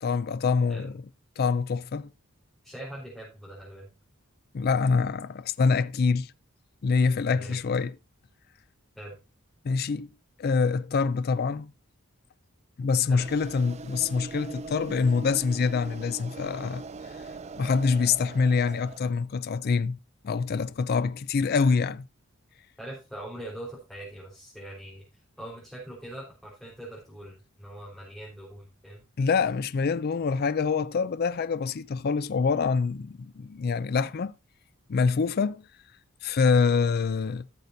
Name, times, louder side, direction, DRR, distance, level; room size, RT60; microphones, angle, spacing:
voice 1, 0.0-0.9 1.4-2.1 4.5-6.3 6.8-7.9 9.6-10.1 10.4-11.7 12.8-16.8 17.6-20.0 20.2-22.0 29.2-34.3 34.9-35.6 36.2-37.5, left 5 dB, 45° left, 0.4 m, -25 dB
voice 2, 2.6-3.9 7.3-7.6 8.9-9.2 13.1-13.2 22.8-25.0 25.4-29.0, right 1 dB, ahead, 4.0 m, -42 dB
sound 1, 13.2-19.0, right 4 dB, 30° right, 0.4 m, -41 dB
16.0 x 6.6 x 2.6 m
head